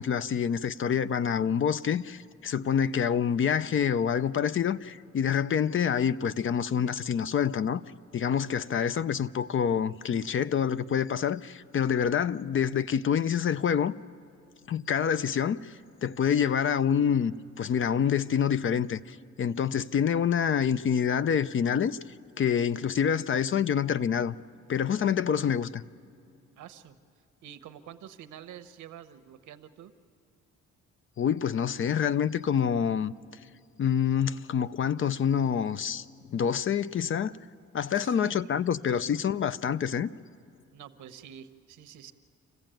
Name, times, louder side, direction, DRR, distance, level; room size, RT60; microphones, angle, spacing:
voice 1, 0.0-7.8 8.1-13.9 14.7-22.0 22.4-24.3 24.7-25.8 31.2-33.1 33.8-37.3 37.7-40.1, left 8 dB, 45° left, 0.6 m, -27 dB
voice 2, 26.6-27.0 27.4-29.9 37.8-38.4 38.9-39.1 40.7-42.1, right 10 dB, 80° right, 1.1 m, -48 dB
27.0 x 15.0 x 9.0 m
cardioid pair, 90°, 30 cm